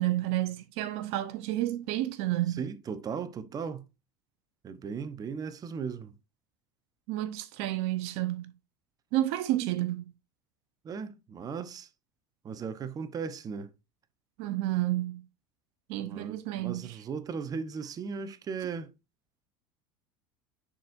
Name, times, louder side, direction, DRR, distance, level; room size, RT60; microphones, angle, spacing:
voice 1, 0.0-2.6 7.1-8.5 9.1-10.1 14.4-15.2 15.9-17.0, right 15 dB, 65° right, 0.8 m, -30 dB
voice 2, 2.6-3.8 4.6-6.1 10.8-11.9 12.4-13.7 16.0-18.9, right 6 dB, 35° right, 0.9 m, -37 dB
10.0 x 4.4 x 2.6 m
hypercardioid pair, 95°, 12 cm